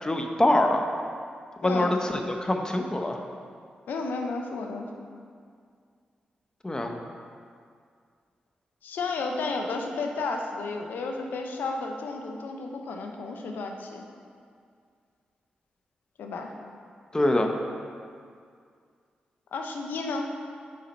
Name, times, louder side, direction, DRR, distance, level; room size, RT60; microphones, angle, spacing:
voice 1, 0.0-0.8 1.6-3.2 6.6-7.0 17.1-17.5, left 1 dB, 25° left, 4 dB, 0.7 m, -24 dB
voice 2, 1.6-1.9 3.9-5.0 8.8-14.0 16.2-16.5 19.5-20.3, left 3 dB, 85° left, 3 dB, 0.6 m, -32 dB
5.9 x 4.2 x 5.2 m, 2.2 s
cardioid pair, 55°, 3 cm